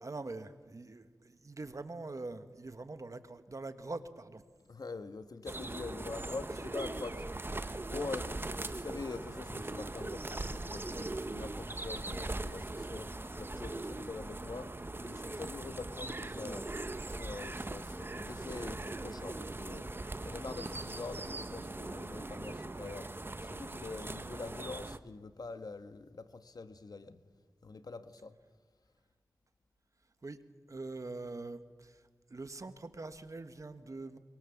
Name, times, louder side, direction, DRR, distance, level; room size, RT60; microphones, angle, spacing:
voice 1, 0.0-4.4 7.7-8.1 30.2-30.4 30.7-32.0 32.3-34.2, right 3 dB, 50° right, 10 dB, 1.4 m, -44 dB
voice 2, 4.7-7.2 7.9-8.4 8.7-13.1 13.4-14.7 15.0-19.9 20.2-23.1 23.4-27.2 27.6-28.3, left 3 dB, 70° left, 10 dB, 1.3 m, -44 dB
sound 1, 5.5-25.0, right 2 dB, 30° right, 0.9 m, -40 dB
23.5 x 22.5 x 7.2 m, 1.5 s
wide cardioid pair, 60°, 7 cm